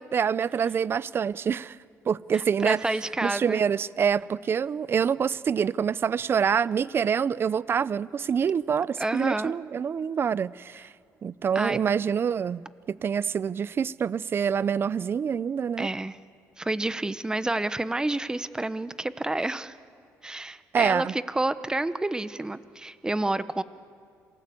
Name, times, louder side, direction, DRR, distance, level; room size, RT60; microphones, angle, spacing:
voice 1, 0.0-1.8 2.1-2.8 3.2-10.9 11.2-12.6 12.9-15.9 20.7-21.1, right 7 dB, 40° right, 0.5 m, -26 dB
voice 2, 2.3-3.6 9.0-9.5 11.5-11.8 15.8-16.2 16.6-19.8 20.2-23.6, right 2 dB, 10° right, 0.8 m, -29 dB
27.0 x 19.0 x 8.4 m
cardioid pair, 110°, 6 cm